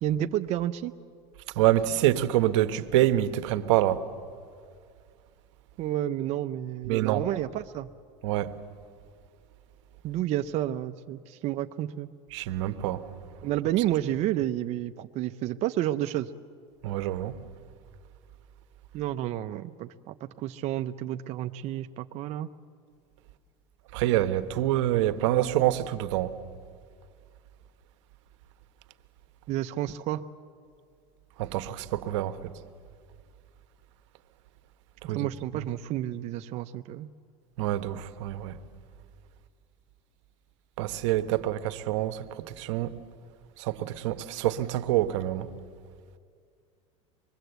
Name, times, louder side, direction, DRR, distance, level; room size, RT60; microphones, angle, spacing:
voice 1, 0.0-0.9 5.8-7.9 10.0-12.1 13.4-16.3 18.9-22.5 29.5-30.2 35.0-37.1, right 13 dB, 45° right, 0.6 m, -30 dB
voice 2, 1.6-4.0 6.9-7.2 8.2-8.5 12.3-13.0 16.8-17.3 23.9-26.3 31.4-32.4 35.1-35.3 37.6-38.6 40.8-42.2 42.6-42.9 43.6-45.5, right 13 dB, 80° right, 1.1 m, -26 dB
25.0 x 21.5 x 8.1 m
supercardioid pair, 125°, 15 cm